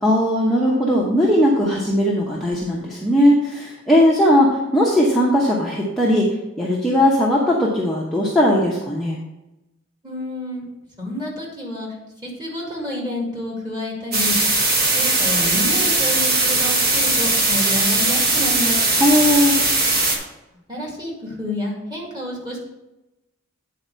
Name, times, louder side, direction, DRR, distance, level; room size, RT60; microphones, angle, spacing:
voice 1, 0.0-6.3 6.6-9.2 19.0-19.5, equal, ahead, -6 dB, 0.8 m, -18 dB
voice 2, 10.0-10.6 11.0-11.9 12.2-14.3 14.9-18.8 20.7-22.7, left 1 dB, 20° right, -3 dB, 2.0 m, -29 dB
sound 1, 14.1-20.2, right 2 dB, 45° right, 1.4 m, -19 dB
8.6 x 4.2 x 5.5 m, 0.97 s
head